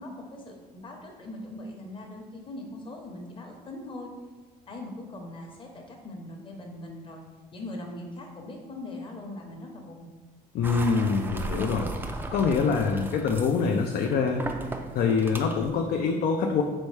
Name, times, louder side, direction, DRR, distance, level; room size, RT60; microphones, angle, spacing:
voice 1, 0.0-4.1 4.7-7.2 7.5-10.1, left 1 dB, 30° left, 1 dB, 0.9 m, -41 dB
voice 2, 10.5-11.9 12.3-14.4 14.9-16.6, left 5 dB, 65° left, 3 dB, 0.4 m, -25 dB
sound 1, 10.6-15.7, right 2 dB, 10° right, 0.4 m, -37 dB
4.2 x 3.5 x 3.2 m, 1.3 s
cardioid pair, 110°, 17 cm